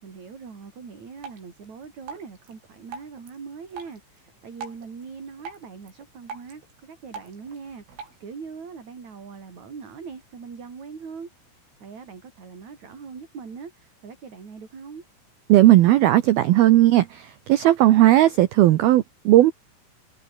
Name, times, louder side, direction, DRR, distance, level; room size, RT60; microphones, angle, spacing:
voice 1, 0.0-15.0, right 5 dB, 35° right, 5.2 m, -41 dB
Drip, 1.2-8.2, right 5 dB, 70° right, 9.1 m, -44 dB
voice 2, 15.5-17.2 17.5-19.5, right 15 dB, 90° right, 2.1 m, -16 dB
omnidirectional pair, 5.9 m